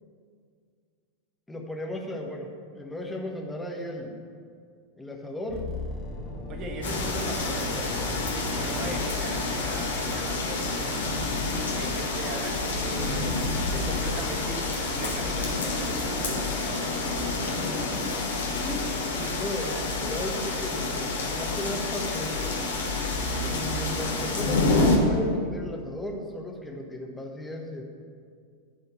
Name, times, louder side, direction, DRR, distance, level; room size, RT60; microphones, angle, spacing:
voice 1, 1.5-4.2 5.0-5.7 17.6-18.2 18.6-22.6 23.4-27.8, left 1 dB, 5° left, 0 dB, 1.4 m, -36 dB
sound 1, 5.5-15.5 15.7-16.0, left 1 dB, 25° left, 1.6 m, -40 dB
voice 2, 6.5-11.3 11.7-13.4 13.7-17.1, right 3 dB, 35° right, 3 dB, 1.4 m, -39 dB
sound 2, 6.8-25.0, left 3 dB, 65° left, 1.6 m, -28 dB
12.0 x 4.4 x 8.1 m, 2.1 s
figure-of-eight pair, 90°, 0 cm